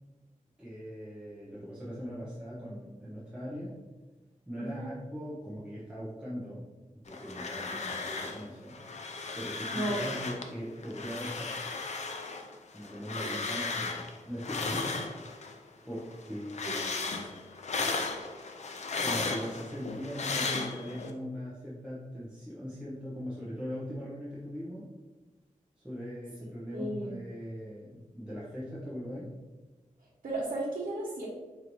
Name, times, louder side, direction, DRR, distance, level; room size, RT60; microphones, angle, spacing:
voice 1, 0.6-3.8 4.5-8.8 9.3-11.8 12.7-15.0 15.4-15.5 15.8-17.3 19.0-24.9 25.8-29.3, equal, 5° right, -9 dB, 0.7 m, -40 dB
voice 2, 4.6-4.9 9.7-10.1 13.2-13.6 16.6-16.8 26.7-27.2 30.2-31.3, right 1 dB, 85° right, -8 dB, 0.9 m, -35 dB
sound 1, 7.1-8.5 8.7-10.5 10.8-15.6 15.9-21.1, left 4 dB, 55° left, 0.4 m, -35 dB
5.0 x 2.6 x 3.0 m, 1.2 s
wide cardioid pair, 130°, 14 cm